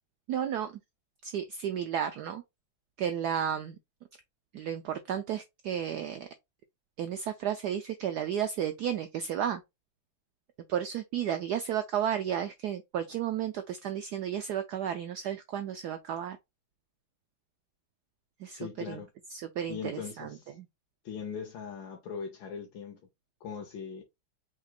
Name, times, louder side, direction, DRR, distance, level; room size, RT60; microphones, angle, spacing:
voice 1, 0.3-0.8 1.2-2.4 3.0-3.8 4.5-6.3 7.0-9.6 10.7-16.4 18.4-19.0 19.3-20.7, right 9 dB, 80° right, 0.9 m, -33 dB
voice 2, 18.5-19.1 19.7-20.6 21.0-23.0 23.4-24.0, left 6 dB, 70° left, 1.6 m, -40 dB
5.0 x 3.6 x 2.3 m
omnidirectional pair, 2.3 m